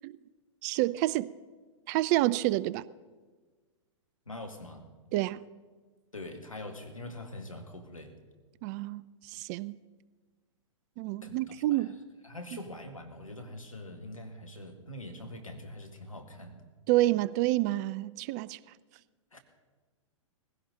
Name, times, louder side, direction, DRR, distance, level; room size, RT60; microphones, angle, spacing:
voice 1, 0.6-1.3 1.9-2.8 5.1-5.4 8.6-9.8 11.0-11.9 16.9-18.6, right 17 dB, 35° right, 0.4 m, -28 dB
voice 2, 4.3-4.9 6.1-8.2 11.2-11.9 12.2-16.6 19.3-19.4, left 1 dB, 90° left, 1.9 m, -44 dB
19.5 x 16.0 x 3.9 m
figure-of-eight pair, 110°, 17 cm